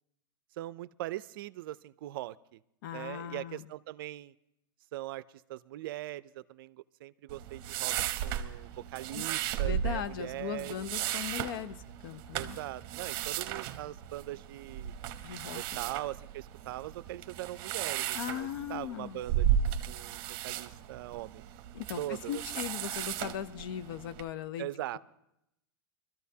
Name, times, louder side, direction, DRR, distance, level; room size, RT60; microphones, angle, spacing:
voice 1, 0.5-2.6 2.9-4.3 4.9-5.2 5.5-7.9 8.2-10.9 12.3-14.9 15.5-19.5 19.8-21.5 22.0-22.4 24.6-25.0, right 15 dB, 70° right, 17 dB, 0.4 m, -41 dB
voice 2, 2.8-3.6 9.1-9.3 9.6-12.6 15.2-15.6 18.1-19.2 21.7-22.0 22.3-24.7, left 9 dB, 65° left, 16 dB, 0.7 m, -38 dB
sound 1, 7.3-24.2, right 10 dB, 50° right, 0.9 m, -35 dB
23.0 x 13.5 x 2.8 m, 0.82 s
supercardioid pair, 130°, 12 cm